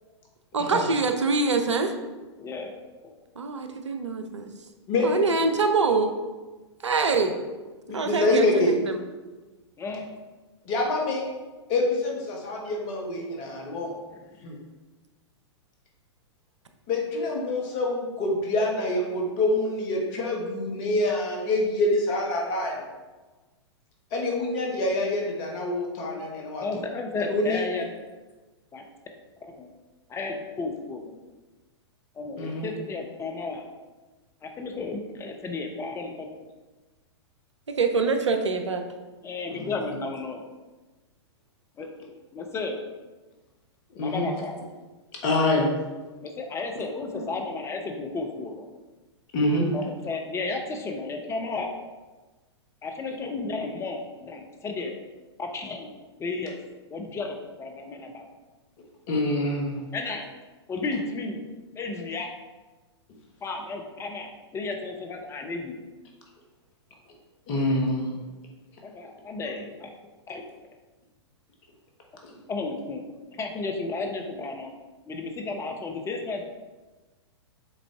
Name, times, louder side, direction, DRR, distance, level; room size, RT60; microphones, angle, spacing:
voice 1, 0.5-1.9 3.4-4.5 5.0-6.1 6.8-7.3 7.9-9.0 37.7-38.8, right 4 dB, 80° right, 6 dB, 0.7 m, -24 dB
voice 2, 2.4-2.7 3.0-3.1 9.8-10.0 14.1-14.4 26.6-28.0 28.7-28.8 29.6-29.7 30.1-31.1 32.1-33.7 34.4-36.3 39.2-40.4 41.8-41.9 42.3-42.8 44.0-44.5 46.2-48.7 49.7-51.7 52.8-54.9 55.4-55.9 56.2-56.6 56.9-58.2 59.9-60.3 60.7-61.5 61.7-62.3 63.4-65.8 68.8-69.9 70.3-70.4 72.5-73.0 73.3-74.7 75.1-76.4, left 3 dB, 20° left, 4 dB, 0.8 m, -33 dB
voice 3, 7.9-8.7 10.6-11.2 11.7-13.9 14.4-14.6 16.9-22.8 24.1-26.6 27.2-27.6 32.4-32.7 39.5-39.7 43.9-44.3 45.2-45.7 49.3-49.7 59.1-59.8 67.5-68.2 72.2-72.3, left 2 dB, 40° left, 0 dB, 1.6 m, -26 dB
7.4 x 4.0 x 3.5 m, 1.2 s
figure-of-eight pair, 105°, 15 cm